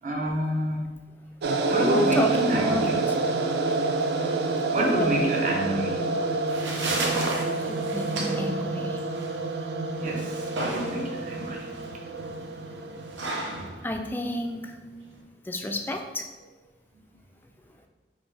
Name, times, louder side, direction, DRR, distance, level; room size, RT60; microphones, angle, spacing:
voice 1, 0.0-0.8 1.7-2.9 4.7-6.0 10.0-11.7, right 1 dB, 45° right, -1 dB, 0.8 m, -28 dB
sound 1, 1.4-13.7, right 3 dB, 60° right, 0.4 m, -28 dB
voice 2, 1.8-3.2 4.8-5.1 7.7-9.0 13.8-14.7 15.5-16.3, left 1 dB, 10° left, 4 dB, 0.3 m, -30 dB
sound 2, 6.2-15.2, right 2 dB, 85° right, 0.8 m, -34 dB
5.2 x 2.8 x 3.3 m, 1.3 s
head